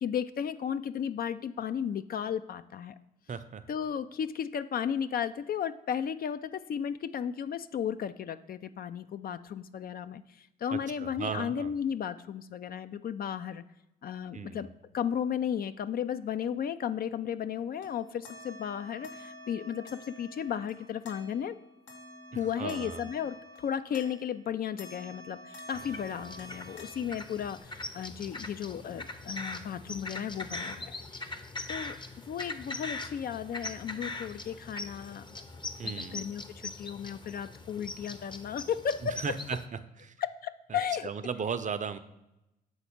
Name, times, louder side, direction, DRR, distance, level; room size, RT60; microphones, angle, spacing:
voice 1, 0.0-3.0 3.7-13.6 14.0-14.7 14.9-21.6 22.3-31.3 31.7-32.0 32.3-39.4 40.2-41.1, left 8 dB, 50° left, 12 dB, 0.4 m, -34 dB
voice 2, 3.3-3.7 10.7-11.7 14.3-14.7 22.3-23.1 35.8-36.2 39.0-39.6 40.0-40.1 40.7-42.0, right 6 dB, 40° right, 11 dB, 0.6 m, -36 dB
sound 1, 17.4-24.5 24.8-27.6, left 1 dB, 75° left, 1.0 m, -49 dB
sound 2, 25.7-39.7, left 2 dB, 25° left, 0.7 m, -41 dB
7.1 x 4.1 x 5.2 m, 0.89 s
hypercardioid pair, 45°, 20 cm